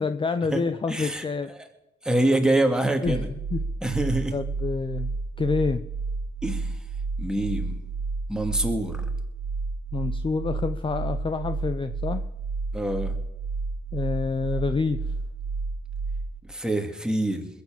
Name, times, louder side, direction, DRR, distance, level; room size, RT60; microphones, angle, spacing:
voice 1, 0.0-1.5 3.0-3.6 4.3-5.9 9.9-12.2 13.9-15.0, left 4 dB, 25° left, 11 dB, 0.7 m, -28 dB
voice 2, 0.9-1.2 2.0-3.3 3.8-4.4 6.4-6.7 7.2-7.7 8.3-9.0 12.7-13.2 16.5-17.5, right 1 dB, 5° right, 4 dB, 2.2 m, -25 dB
sound 1, 3.0-16.4, right 4 dB, 75° right, 1.0 m, -31 dB
21.0 x 7.3 x 7.6 m, 0.91 s
cardioid pair, 90°, 20 cm